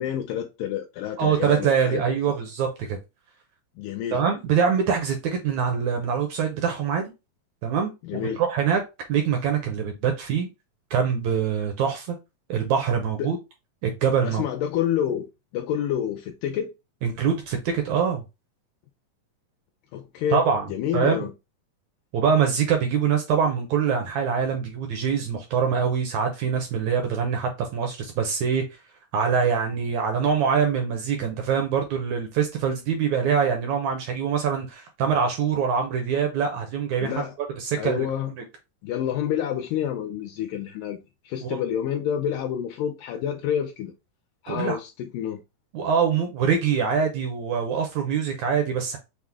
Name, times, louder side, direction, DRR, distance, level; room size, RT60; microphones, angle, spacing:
voice 1, 0.0-2.4 3.8-4.2 8.0-8.4 13.2-13.3 14.2-15.3 15.5-16.7 19.9-21.3 37.0-37.4 37.8-38.3 38.8-41.0 41.2-43.9 44.4-45.4, left 9 dB, 80° left, 2.1 m, -28 dB
voice 2, 1.2-3.0 4.1-7.1 7.6-8.8 9.1-10.5 10.9-12.2 12.5-13.4 13.8-14.4 17.0-18.2 20.3-20.7 20.9-21.3 22.1-28.6 29.1-37.1 37.6-38.1 41.4-41.6 44.5-44.8 45.7-49.0, right 7 dB, 75° right, 1.7 m, -24 dB
5.9 x 2.1 x 3.3 m
omnidirectional pair, 4.0 m